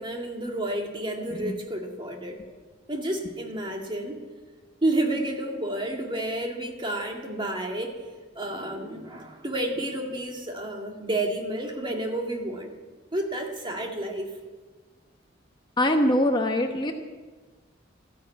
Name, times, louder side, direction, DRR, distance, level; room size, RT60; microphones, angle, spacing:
voice 1, 0.0-2.4 2.9-4.2 4.8-8.0 8.4-12.7 13.1-14.3, right 1 dB, 25° right, 1 dB, 2.1 m, -30 dB
voice 2, 15.8-16.9, left 1 dB, 25° left, 4 dB, 1.0 m, -22 dB
14.0 x 10.5 x 8.5 m, 1.3 s
head